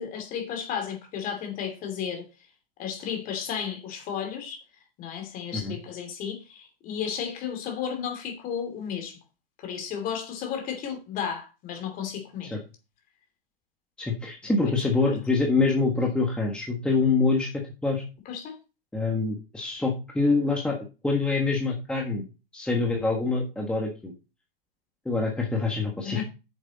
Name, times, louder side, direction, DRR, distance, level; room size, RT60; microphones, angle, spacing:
voice 1, 0.0-2.3 2.8-4.6 5.0-9.2 9.6-12.6 15.0-15.2 18.2-18.6 26.0-26.2, left 8 dB, 30° left, 2.9 m, -33 dB
voice 2, 14.0-18.0 18.9-22.2 22.5-24.1 25.0-26.2, left 3 dB, 5° left, 1.6 m, -25 dB
9.2 x 7.2 x 4.1 m
hypercardioid pair, 125°, 29 cm